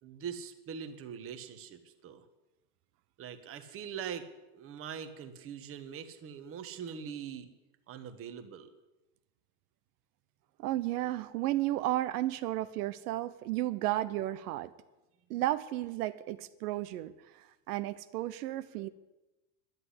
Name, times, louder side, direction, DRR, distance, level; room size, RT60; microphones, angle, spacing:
voice 1, 0.0-2.2 3.2-7.5 7.9-8.7, right 7 dB, 30° right, 8 dB, 1.3 m, -42 dB
voice 2, 10.6-14.7 15.3-17.1 17.4-18.9, right 15 dB, 85° right, 12 dB, 0.9 m, -33 dB
11.0 x 10.0 x 9.9 m, 1.0 s
supercardioid pair, 155°, 45 cm